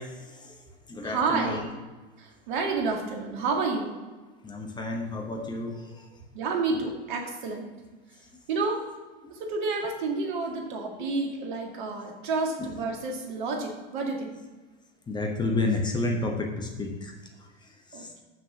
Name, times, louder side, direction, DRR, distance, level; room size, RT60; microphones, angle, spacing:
voice 1, 0.0-1.7 4.4-6.2 8.3-8.4 9.2-9.3 12.6-12.8 15.1-18.2, left 2 dB, 15° left, 2 dB, 1.1 m, -32 dB
voice 2, 1.0-1.8 2.2-3.9 6.3-7.7 8.5-8.8 9.3-14.4 17.9-18.2, right 3 dB, 55° right, 1 dB, 2.0 m, -30 dB
7.4 x 6.4 x 6.0 m, 1.3 s
figure-of-eight pair, 85°, 29 cm